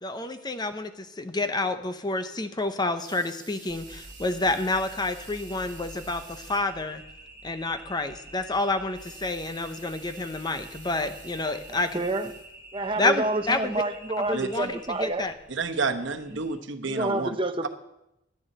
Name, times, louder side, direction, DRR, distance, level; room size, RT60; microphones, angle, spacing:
voice 1, 0.0-7.0 7.4-12.0 13.0-13.8 14.2-15.3, left 2 dB, 20° left, 9 dB, 0.7 m, -29 dB
Water tap faucet / Sink (filling or washing) / Liquid, 3.0-6.7 7.2-7.3 7.6-7.7 8.8-12.9 13.5-13.6, right 8 dB, 45° right, 2.0 m, -51 dB
sound 1, 3.7-16.6, right 2 dB, 10° right, 1.6 m, -47 dB
voice 2, 11.7-12.3 12.7-15.3 16.3-16.4 16.8-17.7, right 2 dB, 25° right, 8 dB, 0.7 m, -29 dB
voice 3, 14.3-14.7 15.5-17.3 17.6-17.7, right 4 dB, 70° right, 6 dB, 1.1 m, -30 dB
11.5 x 7.0 x 8.9 m, 0.85 s
head